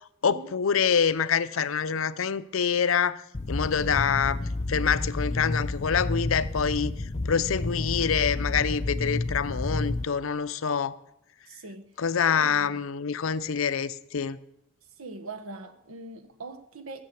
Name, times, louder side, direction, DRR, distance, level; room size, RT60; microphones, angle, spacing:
voice 1, 0.2-3.2 3.5-4.4 4.7-6.9 7.3-11.0 12.0-14.4, left 6 dB, 75° left, 0.6 m, -26 dB
sound 1, 3.3-10.0, left 2 dB, 30° left, 0.6 m, -30 dB
voice 2, 11.5-12.0 12.3-12.8 15.0-17.0, right 3 dB, 90° right, 1.3 m, -41 dB
16.0 x 6.7 x 8.4 m
head